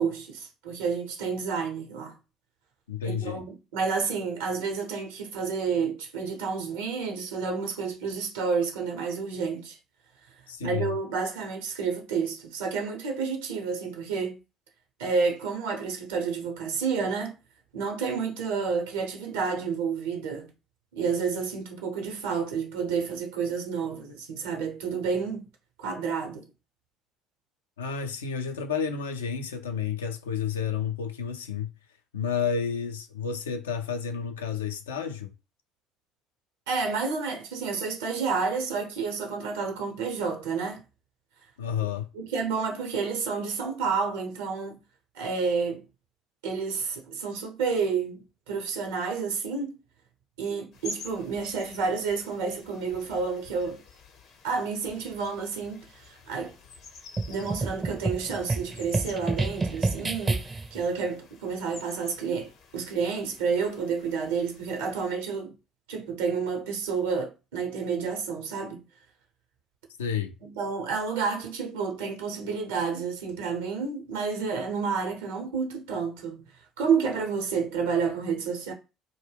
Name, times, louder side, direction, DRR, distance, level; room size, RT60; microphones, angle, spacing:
voice 1, 0.0-2.2 3.0-9.8 10.6-14.4 15.0-17.3 17.7-20.5 20.9-25.5 25.8-26.5 36.7-40.8 41.8-41.9 42.1-44.8 45.1-45.8 46.4-49.8 50.4-53.8 54.4-56.5 57.3-65.5 65.9-68.8 70.4-76.5 76.8-78.7, right 5 dB, 80° right, 0.7 m, -30 dB
voice 2, 2.9-3.4 10.5-10.9 27.8-31.7 32.1-35.3 41.6-42.1 70.0-70.3, left 7 dB, 85° left, 0.3 m, -31 dB
sound 1, 50.7-65.2, left 3 dB, 65° left, 0.7 m, -49 dB
sound 2, 57.2-60.8, right 3 dB, 25° right, 0.4 m, -29 dB
2.2 x 2.0 x 3.2 m
hypercardioid pair, 60°, 0 cm